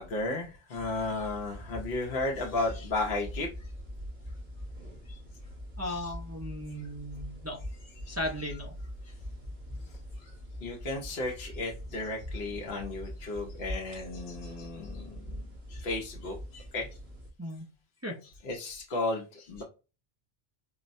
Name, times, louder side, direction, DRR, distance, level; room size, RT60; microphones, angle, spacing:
voice 1, 0.0-3.5 5.1-5.2 5.8-6.1 8.0-8.2 10.2-10.3 10.6-15.4 15.7-16.9 18.2-19.6, left 2 dB, 65° left, -1 dB, 0.9 m, -34 dB
sound 1, 0.8-17.3, equal, 70° right, 2.0 m, -43 dB
voice 2, 5.8-7.6 8.1-8.7 17.4-17.7 18.0-18.2, left 1 dB, 20° right, -1 dB, 0.4 m, -36 dB
4.6 x 2.1 x 2.5 m, 0.31 s
omnidirectional pair, 1.1 m